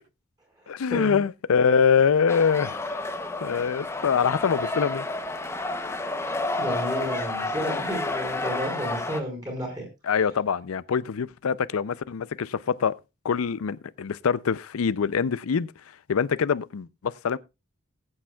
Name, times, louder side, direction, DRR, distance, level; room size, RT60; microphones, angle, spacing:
voice 1, 0.7-5.1 10.0-13.0 13.2-15.7 16.1-17.4, left 6 dB, 90° left, 0.5 m, -24 dB
sound 1, 2.3-9.2, left 2 dB, 10° left, 0.7 m, -30 dB
voice 2, 6.5-9.9, equal, 20° right, 5.0 m, -31 dB
19.5 x 8.8 x 2.3 m
head